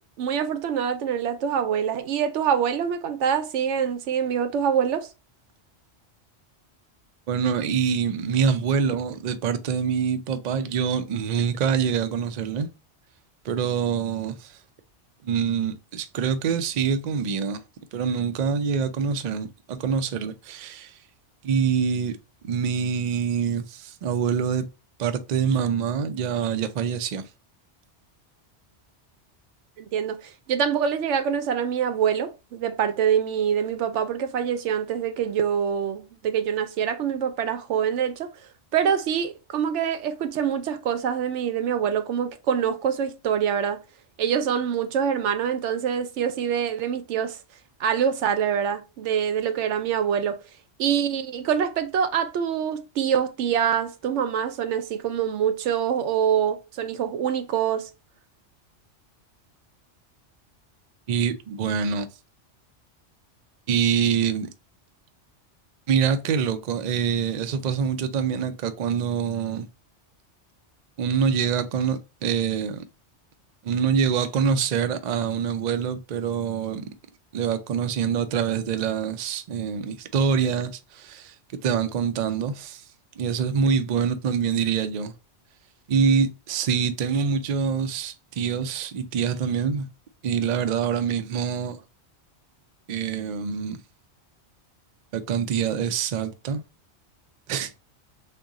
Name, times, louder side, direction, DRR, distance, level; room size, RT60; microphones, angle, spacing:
voice 1, 0.2-5.1 29.8-38.3 38.7-43.8 44.2-47.4 47.8-50.4 50.8-57.9, right 8 dB, 90° right, 0.9 m, -25 dB
voice 2, 7.3-12.7 13.4-14.6 15.2-17.6 17.9-21.0 21.4-22.2 22.4-24.7 25.0-27.2 61.1-62.1 63.7-64.5 65.9-69.7 71.0-72.8 73.6-76.9 77.3-81.3 81.6-82.8 83.2-85.1 85.9-89.8 90.2-91.8 92.9-93.8 95.1-96.6 97.5-97.8, right 6 dB, 55° right, 0.5 m, -25 dB
3.6 x 2.3 x 3.8 m
omnidirectional pair, 1.2 m